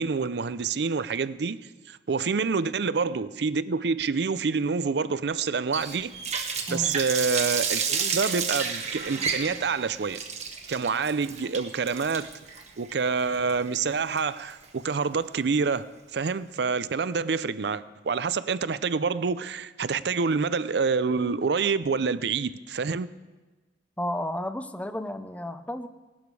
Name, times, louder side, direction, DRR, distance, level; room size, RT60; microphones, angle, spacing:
voice 1, 0.0-1.6 1.9-6.1 6.7-10.2 10.7-12.3 12.8-23.1, right 5 dB, 65° right, 0.5 m, -27 dB
Water tap faucet, 5.7-14.6, right 6 dB, 40° right, 1.3 m, -31 dB
voice 2, 6.7-7.0 24.0-25.9, left 1 dB, 10° left, 0.5 m, -32 dB
18.0 x 12.0 x 4.8 m
head